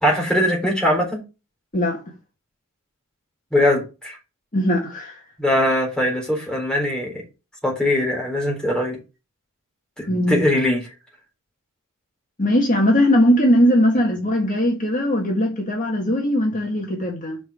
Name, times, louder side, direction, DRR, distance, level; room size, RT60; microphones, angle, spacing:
voice 1, 0.0-1.2 3.5-4.2 5.4-7.2 7.6-9.0 10.0-10.9, left 1 dB, 5° left, 3.7 m, -21 dB
voice 2, 1.7-2.1 4.5-5.2 10.1-10.5 12.4-17.4, equal, 40° left, 1.7 m, -19 dB
6.2 x 5.3 x 6.3 m
head